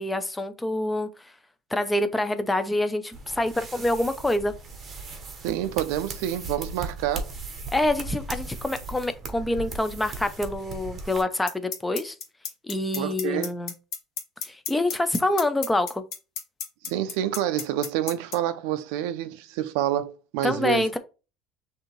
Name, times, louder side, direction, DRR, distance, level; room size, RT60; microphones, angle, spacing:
voice 1, 0.0-1.3 1.7-4.5 7.7-12.2 12.6-13.7 14.4-16.0 20.4-21.0, left 1 dB, 5° left, 0.4 m, -26 dB
sound 1, 3.1-11.2, right 3 dB, 20° right, 0.8 m, -38 dB
voice 2, 5.4-7.3 13.0-13.5 16.8-20.9, right 11 dB, 80° right, 0.4 m, -28 dB
sound 2, 11.5-18.3, left 7 dB, 55° left, 1.3 m, -31 dB
6.4 x 2.7 x 3.0 m
cardioid pair, 160°, 0 cm